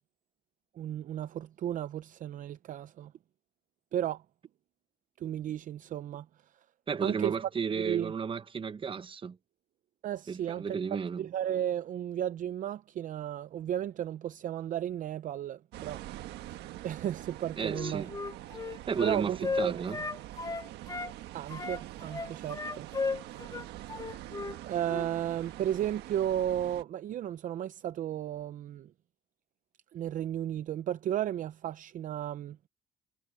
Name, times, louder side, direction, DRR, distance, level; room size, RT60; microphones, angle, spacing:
voice 1, 0.8-3.1 3.9-4.2 5.2-6.3 7.0-7.4 7.8-8.1 10.0-10.8 11.2-16.0 16.5-18.1 19.0-19.8 21.3-22.9 24.7-28.9 29.9-32.6, right 11 dB, 50° right, 0.6 m, -34 dB
voice 2, 6.9-9.4 10.3-11.3 17.6-18.1 18.9-20.0, right 6 dB, 30° right, 1.1 m, -33 dB
sound 1, 15.7-26.8, right 15 dB, 85° right, 1.5 m, -45 dB
Wind instrument woodwind instrument, 17.7-21.1 21.5-24.6 24.9-25.1, left 4 dB, 20° left, 1.9 m, -35 dB
cardioid pair, 110°, 17 cm